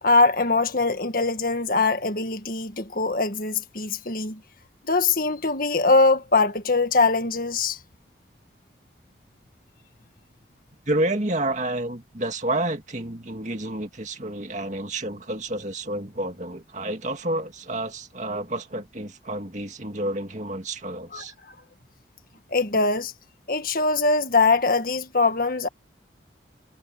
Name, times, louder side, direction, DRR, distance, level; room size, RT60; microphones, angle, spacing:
voice 1, 0.0-4.4 4.8-7.8 21.1-21.2 22.5-23.1 23.5-25.7, left 3 dB, 50° left, 1.8 m, -22 dB
voice 2, 10.9-21.3, right 1 dB, 40° right, 2.2 m, -29 dB
head